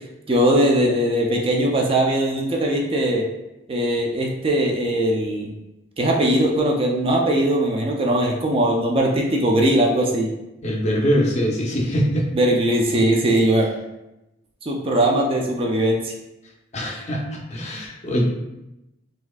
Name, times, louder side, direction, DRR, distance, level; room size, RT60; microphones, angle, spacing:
voice 1, 0.3-3.3 3.7-5.5 6.0-10.3 12.3-13.7 14.6-16.1, right 1 dB, 30° right, 0 dB, 0.4 m, -20 dB
voice 2, 10.6-12.3 16.7-18.2, equal, 35° left, -1 dB, 0.6 m, -23 dB
4.0 x 2.6 x 2.3 m, 0.93 s
head